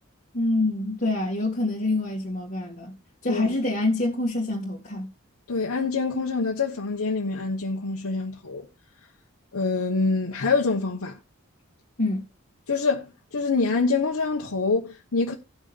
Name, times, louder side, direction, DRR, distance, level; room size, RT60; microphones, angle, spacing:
voice 1, 0.3-2.9 3.2-5.1 12.0-12.3, left 2 dB, 40° left, 2.0 m, -26 dB
voice 2, 5.5-8.7 9.5-11.2 12.7-15.3, left 4 dB, 85° left, 1.2 m, -25 dB
17.5 x 6.3 x 2.5 m
head